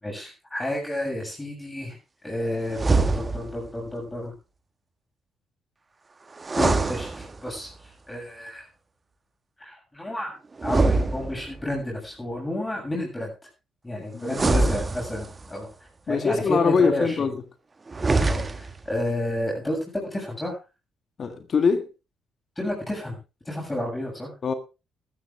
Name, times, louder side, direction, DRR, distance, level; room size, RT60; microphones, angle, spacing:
voice 1, 0.0-2.0 2.2-4.3 6.9-7.7 8.1-8.7 9.6-10.4 10.6-13.3 13.8-15.7 16.1-17.3 18.1-20.6 22.6-23.2 23.5-24.3, left 1 dB, 15° left, 7.4 m, -31 dB
sound 1, 2.7-3.7 6.4-7.7 10.6-11.8 14.3-15.5 17.9-18.9, right 3 dB, 30° right, 1.5 m, -24 dB
voice 2, 6.6-6.9 14.1-14.7 16.1-17.4 21.2-21.9 24.4-24.5, left 5 dB, 50° left, 1.7 m, -23 dB
13.5 x 13.0 x 3.4 m
hypercardioid pair, 50°, 0 cm